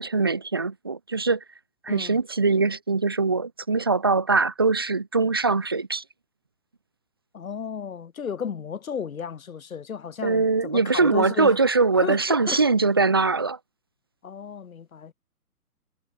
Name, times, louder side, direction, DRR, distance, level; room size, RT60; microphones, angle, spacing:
voice 1, 0.0-1.4 1.8-6.0 10.2-13.6, right 4 dB, 15° right, 0.5 m, -22 dB
voice 2, 1.9-2.2 7.3-11.6 12.0-12.6 14.2-15.1, left 7 dB, 60° left, 5.1 m, -34 dB
figure-of-eight pair, 135°, 47 cm